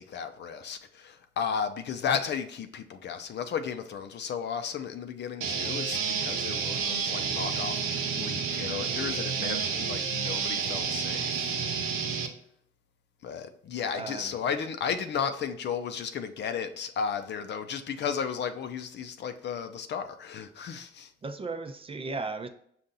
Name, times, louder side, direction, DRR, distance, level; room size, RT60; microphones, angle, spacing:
voice 1, 0.0-11.5 13.2-21.1, left 7 dB, 60° left, 0.6 m, -34 dB
sound 1, 5.4-12.3, right 6 dB, 90° right, 0.7 m, -30 dB
voice 2, 13.9-14.3 21.2-22.5, right 3 dB, 30° right, 0.5 m, -36 dB
5.5 x 2.5 x 3.8 m
cardioid pair, 90°, 20 cm